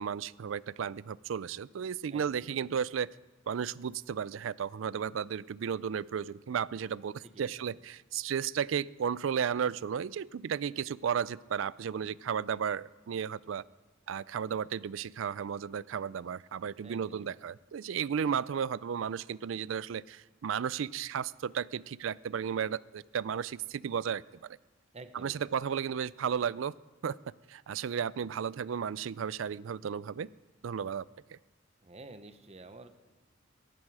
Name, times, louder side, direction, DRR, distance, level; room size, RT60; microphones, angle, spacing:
voice 1, 0.0-3.1 3.5-13.6 14.1-24.6 25.2-26.7 27.0-27.2 27.5-30.3 30.6-31.0 31.3-31.4, right 7 dB, 75° right, 21 dB, 0.4 m, -34 dB
voice 2, 2.1-2.5 7.2-7.8 16.8-17.3 24.9-25.5 31.8-32.9, right 2 dB, 35° right, 9 dB, 0.9 m, -50 dB
17.0 x 15.0 x 4.8 m, 1.2 s
head